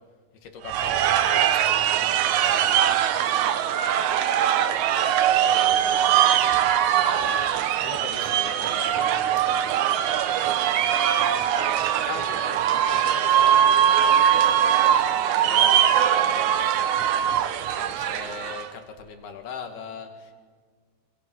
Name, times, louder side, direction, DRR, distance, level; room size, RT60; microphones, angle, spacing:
voice 1, 0.4-3.1 4.7-9.3 10.2-11.1 11.5-12.6 12.9-16.9 17.5-20.3, left 6 dB, 90° left, 5 dB, 4.1 m, -41 dB
sound 1, 0.7-18.7, right 10 dB, 70° right, 1.9 m, -21 dB
27.5 x 25.5 x 6.3 m, 1.6 s
omnidirectional pair, 4.4 m